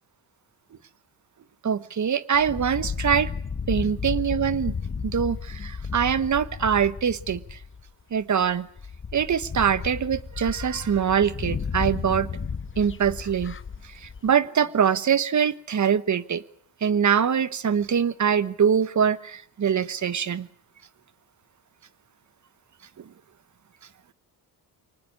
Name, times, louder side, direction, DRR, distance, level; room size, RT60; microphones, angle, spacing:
voice 1, 1.6-3.3 3.7-4.7 5.0-7.6 8.1-8.7 9.1-12.3 12.8-13.6 13.9-16.4 16.8-20.5, right 7 dB, 40° right, 16 dB, 1.2 m, -23 dB
sound 1, 2.3-7.9 8.4-8.5 8.8-14.3, left 5 dB, 30° left, 1.1 m, -33 dB
24.5 x 19.5 x 9.6 m, 0.64 s
cardioid pair, 95°, 43 cm